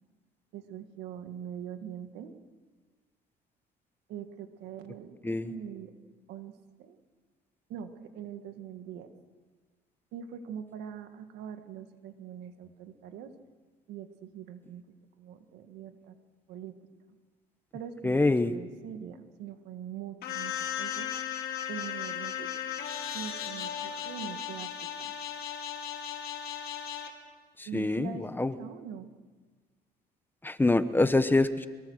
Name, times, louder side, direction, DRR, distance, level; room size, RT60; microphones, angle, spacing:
voice 1, 0.5-2.3 4.1-5.9 6.3-6.5 6.8-7.0 7.7-9.1 10.1-13.3 13.9-14.8 15.2-16.2 16.5-16.7 17.7-21.1 21.7-22.5 23.1-24.7 25.0-25.1 27.7-29.1, right 9 dB, 85° right, 8 dB, 1.8 m, -43 dB
voice 2, 18.0-18.5 27.6-28.5 30.4-31.7, left 2 dB, 10° left, 12 dB, 1.0 m, -25 dB
sound 1, 20.2-27.1, left 9 dB, 65° left, 2.9 m, -36 dB
23.5 x 22.5 x 6.4 m, 1.4 s
cardioid pair, 110°, 17 cm